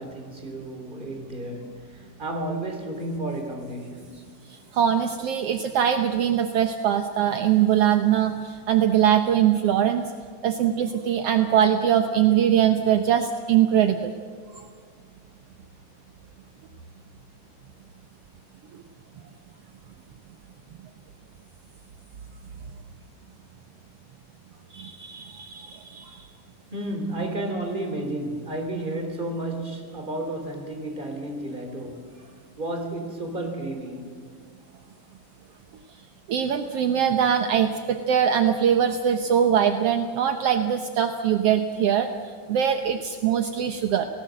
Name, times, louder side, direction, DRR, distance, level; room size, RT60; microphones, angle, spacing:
voice 1, 0.0-1.8 2.2-4.3 26.7-32.1 32.6-34.3, right 1 dB, 15° right, 3.3 m, -32 dB
voice 2, 4.7-10.0 10.4-14.1 24.7-26.2 36.3-42.1 42.5-44.1, right 9 dB, 70° right, 1.5 m, -22 dB
29.0 x 18.5 x 7.7 m
omnidirectional pair, 4.0 m